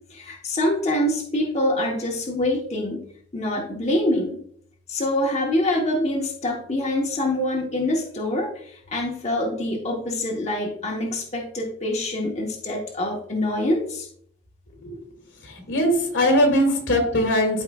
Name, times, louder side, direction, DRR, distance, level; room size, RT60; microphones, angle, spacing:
voice 1, 0.1-3.0 3.3-4.4 4.9-14.1, left 1 dB, 35° left, -1 dB, 1.0 m, -25 dB
voice 2, 15.4-17.6, equal, 90° left, 2 dB, 2.2 m, -21 dB
12.0 x 4.7 x 2.3 m, 0.64 s
head